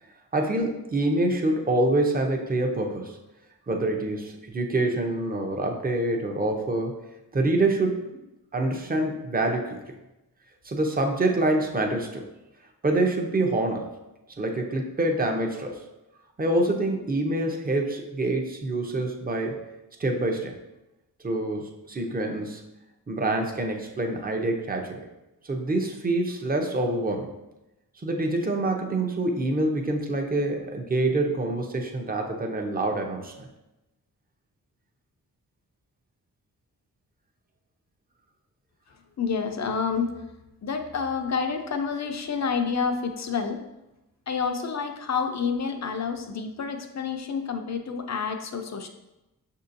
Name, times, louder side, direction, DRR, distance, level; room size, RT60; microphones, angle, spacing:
voice 1, 0.3-3.2 3.7-6.9 7.3-8.1 8.5-9.8 10.6-12.2 12.8-13.9 14.4-15.8 16.4-19.6 20.0-20.5 21.2-22.6 23.1-25.1 25.4-27.3 28.0-33.5, right 2 dB, 20° right, 3 dB, 0.7 m, -26 dB
voice 2, 39.2-40.1 40.6-43.6 44.3-48.9, left 5 dB, 45° left, 6 dB, 0.5 m, -28 dB
5.9 x 2.7 x 2.6 m, 0.97 s
cardioid pair, 55°, 39 cm